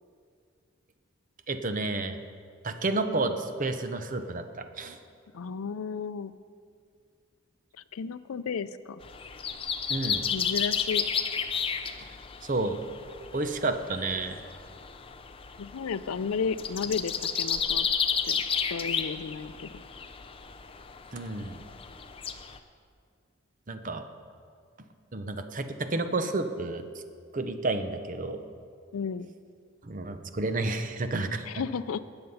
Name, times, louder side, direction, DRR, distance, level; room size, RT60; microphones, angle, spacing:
voice 1, 1.5-2.2 2.6-5.0 9.9-10.2 12.4-12.8 13.3-14.4 21.1-21.6 23.7-24.0 25.1-26.8 27.3-28.4 29.8-31.5, right 2 dB, 35° right, 8 dB, 0.7 m, -30 dB
voice 2, 5.3-6.3 7.9-9.0 10.3-11.0 15.6-17.9 18.2-18.4 18.7-19.7 28.9-29.3 31.5-32.0, left 5 dB, 80° left, 14 dB, 0.4 m, -33 dB
sound 1, 9.0-22.6, left 7 dB, 25° left, 0.5 m, -32 dB
19.0 x 6.9 x 5.5 m, 2.2 s
head